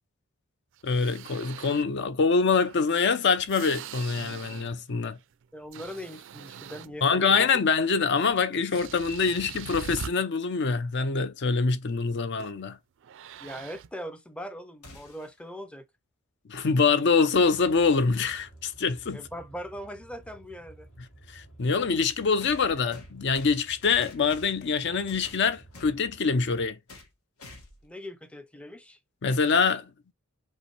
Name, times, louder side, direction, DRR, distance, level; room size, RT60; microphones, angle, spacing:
sound 1, 0.7-2.0 2.5-4.9 5.2-7.2 8.3-8.4 8.7-10.1 12.4-12.6 13.0-13.9, right 8 dB, 60° right, 0.4 m, -42 dB
voice 1, 0.8-5.2 7.0-12.8 16.5-19.2 21.3-26.8 29.2-29.9, left 5 dB, 55° left, 0.5 m, -25 dB
voice 2, 5.5-7.5 13.4-15.9 19.1-20.9 27.8-29.0, equal, 5° left, 0.5 m, -40 dB
sound 2, 14.8-15.4 17.5-17.6 18.7-18.8 22.4-24.7 25.1-26.0 26.9-27.1 27.4-27.9, left 2 dB, 90° left, 1.2 m, -48 dB
sound 3, 17.3-26.7, right 1 dB, 70° left, 2.7 m, -53 dB
5.5 x 2.6 x 3.1 m
head